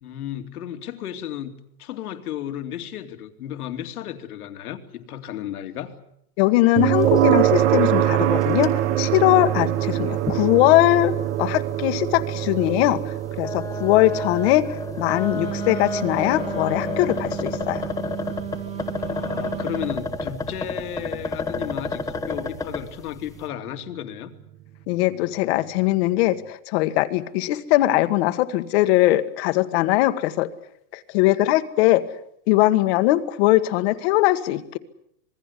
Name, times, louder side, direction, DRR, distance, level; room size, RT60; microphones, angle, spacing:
voice 1, 0.0-5.9 19.0-24.3, left 10 dB, 80° left, 7 dB, 2.9 m, -34 dB
voice 2, 6.4-17.8 24.9-30.5 30.9-32.1 32.5-34.8, left 16 dB, 45° left, 11 dB, 1.6 m, -21 dB
sound 1, 6.8-21.7, right 12 dB, 55° right, 1.5 m, -25 dB
sound 2, 7.0-7.5 7.7-7.8 8.3-8.7 9.3-9.4 10.3-10.4 10.8-10.9 12.1-12.2 13.3-22.9, left 3 dB, 5° left, 1.4 m, -30 dB
Wind instrument woodwind instrument, 15.3-20.0, right 9 dB, 15° right, 0.9 m, -34 dB
26.5 x 20.5 x 8.3 m, 0.73 s
supercardioid pair, 160°, 44 cm